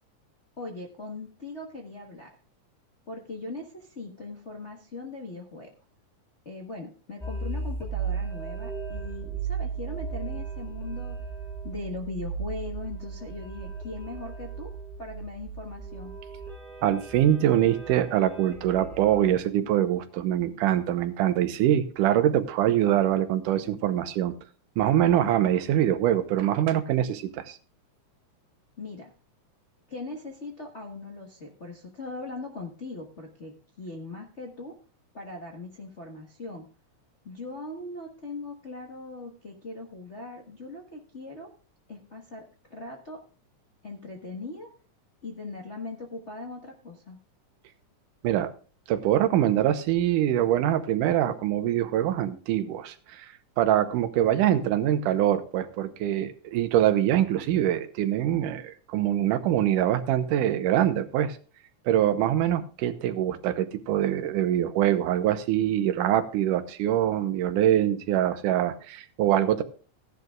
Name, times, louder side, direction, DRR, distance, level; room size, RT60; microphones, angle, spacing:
voice 1, 0.6-2.3 3.1-5.7 6.4-11.2 11.6-14.7 15.0-16.1 28.8-29.1 29.9-34.7 35.1-36.7 37.2-41.5 41.9-43.2 43.8-44.7 45.2-47.2, left 3 dB, 65° left, -1 dB, 0.6 m, -40 dB
Stereo Pad, 7.2-19.4, right 5 dB, ahead, 0.7 m, -36 dB
voice 2, 16.8-24.3 24.8-27.6 48.2-48.5 48.9-53.3 53.6-61.4 61.9-69.6, right 11 dB, 90° right, 10 dB, 2.4 m, -24 dB
16.0 x 11.0 x 2.4 m, 0.37 s
omnidirectional pair, 3.6 m